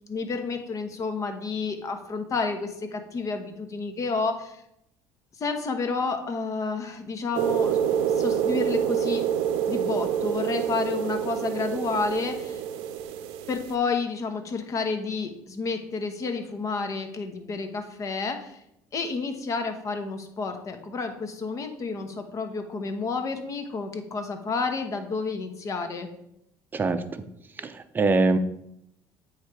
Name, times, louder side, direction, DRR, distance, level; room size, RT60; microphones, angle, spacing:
voice 1, 0.1-4.6 5.4-9.2 9.7-12.6 13.5-18.6 18.9-26.1, left 4 dB, 40° left, 6 dB, 1.1 m, -30 dB
sound 1, 7.3-13.7, right 9 dB, 90° right, 0.6 m, -27 dB
voice 2, 26.7-27.2 27.6-28.4, right 3 dB, 25° right, 9 dB, 0.6 m, -24 dB
8.4 x 3.3 x 4.7 m, 0.78 s
cardioid pair, 100°, 8 cm